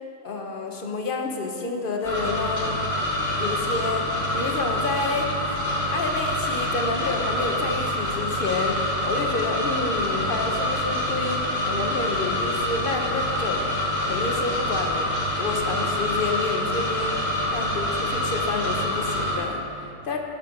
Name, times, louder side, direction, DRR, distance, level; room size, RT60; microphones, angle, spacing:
voice 1, 0.2-2.8 3.3-13.7 14.0-17.2 17.5-20.2, left 3 dB, 45° left, 2 dB, 0.9 m, -29 dB
sound 1, 2.0-19.4, left 1 dB, 25° left, 1.5 m, -26 dB
11.0 x 5.1 x 5.9 m, 2.8 s
omnidirectional pair, 1.4 m